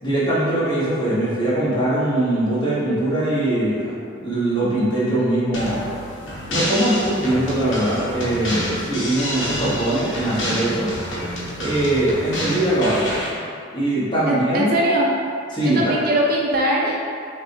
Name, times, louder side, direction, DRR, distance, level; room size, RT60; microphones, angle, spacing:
voice 1, 0.0-5.9 6.5-10.9 11.6-13.1 13.7-14.7 15.5-15.8, right 1 dB, 25° left, -10 dB, 1.2 m, -21 dB
sound 1, 5.5-13.3, equal, 65° left, 0.9 m, -28 dB
voice 2, 14.3-15.1 15.6-16.9, right 1 dB, 50° right, -3 dB, 0.5 m, -20 dB
5.9 x 2.3 x 2.8 m, 2.4 s
head